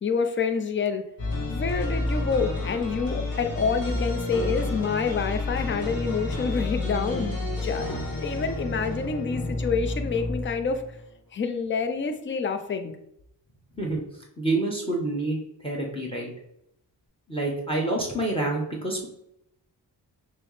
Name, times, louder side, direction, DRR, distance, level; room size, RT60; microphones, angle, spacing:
voice 1, 0.0-1.0 1.5-7.4 7.6-10.8 11.3-12.9, left 5 dB, 25° left, 8 dB, 0.5 m, -27 dB
sound 1, 1.2-11.0, left 2 dB, 50° left, 1.4 m, -30 dB
voice 2, 13.7-16.3 17.3-19.1, right 2 dB, 10° left, 0 dB, 1.1 m, -28 dB
6.1 x 2.1 x 3.1 m, 0.78 s
cardioid pair, 50°, 44 cm